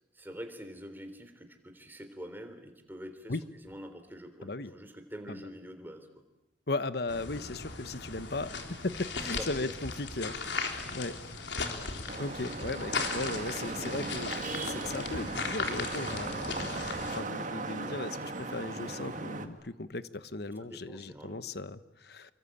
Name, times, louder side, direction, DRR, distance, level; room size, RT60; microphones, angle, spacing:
voice 1, 0.1-3.4 3.6-6.1 9.3-9.5 20.6-21.5, equal, 10° right, 7 dB, 3.5 m, -45 dB
voice 2, 4.4-4.7 5.3-5.4 6.7-8.5 8.8-10.5 10.9-11.2 12.2-14.3 14.7-22.3, left 2 dB, 60° left, 13 dB, 1.2 m, -37 dB
sound 1, 7.1-17.2, left 4 dB, 75° left, 3.8 m, -37 dB
Vehicle horn car horn honking / Traffic noise roadway noise, 12.1-19.5, right 3 dB, 45° right, 2.0 m, -37 dB
28.0 x 24.0 x 8.7 m, 0.92 s
head